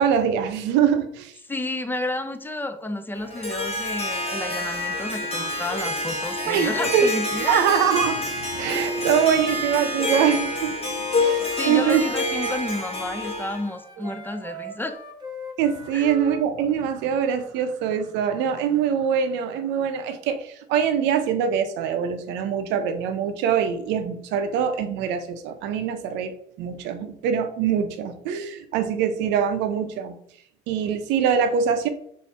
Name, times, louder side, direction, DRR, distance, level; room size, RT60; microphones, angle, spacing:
voice 1, 0.0-1.3 6.5-7.1 7.4-10.9 11.2-12.0 14.0-14.1 15.6-30.2 30.7-31.9, right 8 dB, 85° right, 8 dB, 0.6 m, -23 dB
voice 2, 1.5-7.6 11.5-15.0 15.9-16.1, left 1 dB, 10° left, 9 dB, 0.5 m, -31 dB
Harp, 3.1-13.7, left 2 dB, 35° left, 1.3 m, -27 dB
Wind instrument woodwind instrument, 10.0-12.9 13.2-16.4, left 1 dB, 25° right, 0.9 m, -39 dB
4.2 x 2.7 x 3.3 m, 0.66 s
cardioid pair, 90°, 18 cm